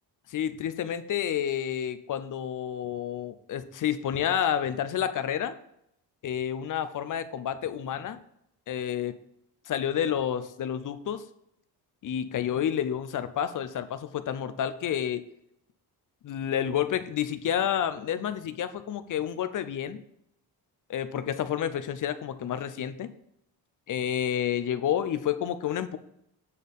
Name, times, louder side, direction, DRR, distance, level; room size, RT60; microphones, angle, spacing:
voice 1, 0.3-5.6 6.2-8.2 8.7-9.2 9.7-11.2 12.0-15.2 16.2-20.0 20.9-23.1 23.9-26.0, left 9 dB, 50° left, 12 dB, 0.6 m, -29 dB
8.3 x 4.3 x 5.2 m, 0.75 s
wide cardioid pair, 175°, 39 cm